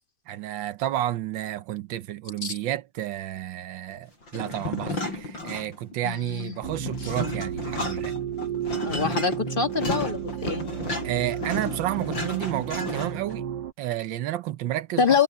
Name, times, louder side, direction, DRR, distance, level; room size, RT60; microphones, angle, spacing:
voice 1, 0.3-8.1 11.0-13.4 13.8-15.2, right 13 dB, 85° right, 1.5 m, -31 dB
sound 1, 4.3-6.0 6.3-13.3, left 2 dB, 80° left, 8.5 m, -33 dB
voice 2, 6.0-6.6 7.0-7.1 8.8-10.7 15.0-15.2, left 5 dB, 30° left, 1.4 m, -25 dB
sound 2, 6.6-13.7, right 8 dB, 70° right, 1.9 m, -33 dB
omnidirectional pair, 2.0 m